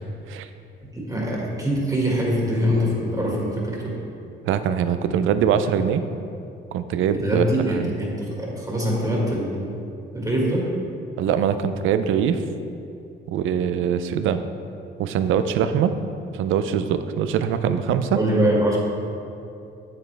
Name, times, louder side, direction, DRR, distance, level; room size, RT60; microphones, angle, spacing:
voice 1, 0.9-4.0 7.1-9.8 10.1-10.7 18.1-18.8, equal, 20° right, -4 dB, 1.9 m, -23 dB
voice 2, 4.5-6.0 6.7-7.9 11.2-12.4 13.3-14.4 15.0-15.9 16.4-18.2, right 8 dB, 85° right, 10 dB, 0.5 m, -22 dB
7.9 x 7.3 x 3.4 m, 2.6 s
cardioid pair, 90°, 20 cm